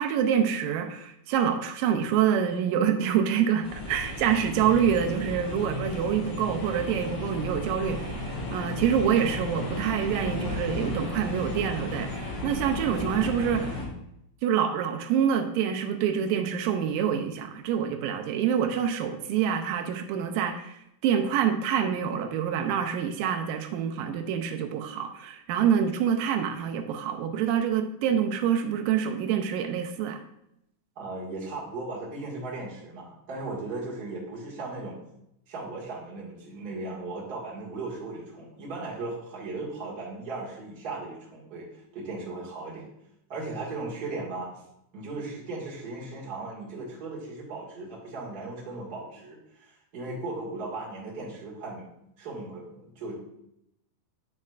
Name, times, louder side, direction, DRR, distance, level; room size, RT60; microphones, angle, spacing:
voice 1, 0.0-13.8 14.4-30.2, right 8 dB, 80° right, 5 dB, 2.1 m, -26 dB
sound 1, 3.6-13.9, left 2 dB, 60° left, 3.3 m, -34 dB
voice 2, 30.9-35.0 35.5-42.9 43.3-44.5 44.9-51.9 52.2-53.2, right 3 dB, 35° right, -5 dB, 1.6 m, -37 dB
8.3 x 6.5 x 2.4 m, 0.79 s
omnidirectional pair, 4.3 m